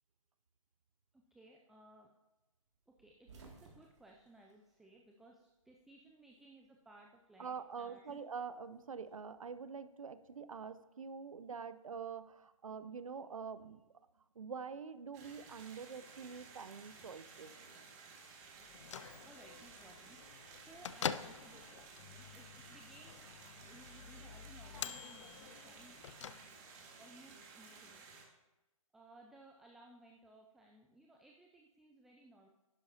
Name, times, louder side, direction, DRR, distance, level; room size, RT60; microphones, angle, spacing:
voice 1, 1.1-2.1 2.9-8.2 19.2-23.3 23.6-26.4 27.0-28.1 28.9-32.5, right 1 dB, ahead, 1 dB, 0.4 m, -61 dB
sound 1, 2.9-5.5 5.8-6.8 8.0-9.5, right 4 dB, 55° right, 2.3 m, -61 dB
voice 2, 7.4-13.8 14.4-17.5, right 6 dB, 75° right, 13 dB, 0.7 m, -45 dB
sound 2, 15.1-28.2, right 4 dB, 30° right, 1.9 m, -56 dB
Bell / Microwave oven, 18.6-26.9, left 7 dB, 60° left, 0.5 m, -46 dB
11.5 x 10.5 x 2.8 m, 1.1 s
figure-of-eight pair, 135°, 18 cm